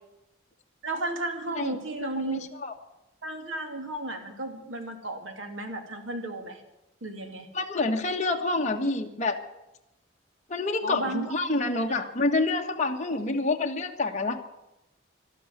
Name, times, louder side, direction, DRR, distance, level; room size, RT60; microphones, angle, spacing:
voice 1, 0.8-2.4 3.2-6.6 7.0-7.5 10.8-11.3 11.7-12.0 13.3-13.4, right 2 dB, 85° right, 5 dB, 2.4 m, -34 dB
voice 2, 2.2-2.7 7.5-9.4 10.5-14.4, left 2 dB, 35° left, 2 dB, 1.3 m, -27 dB
12.5 x 12.5 x 9.3 m, 0.93 s
head